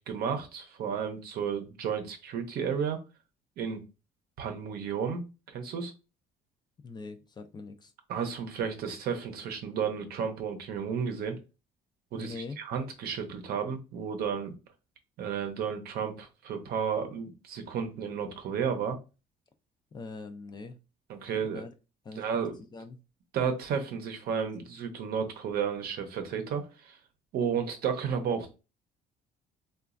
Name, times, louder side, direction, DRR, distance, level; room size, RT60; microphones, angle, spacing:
voice 1, 0.0-3.0 3.6-3.8 4.4-5.2 5.5-5.9 8.1-11.4 12.1-14.6 15.2-19.0 21.1-21.6 22.2-22.6 23.3-27.0 27.3-28.5, right 7 dB, 65° right, 6 dB, 0.7 m, -32 dB
voice 2, 6.8-7.9 12.2-12.6 19.9-20.8 21.3-21.7 22.0-23.0, left 3 dB, 25° left, 7 dB, 0.3 m, -43 dB
3.0 x 2.3 x 2.4 m, 0.30 s
cardioid pair, 110°, 17 cm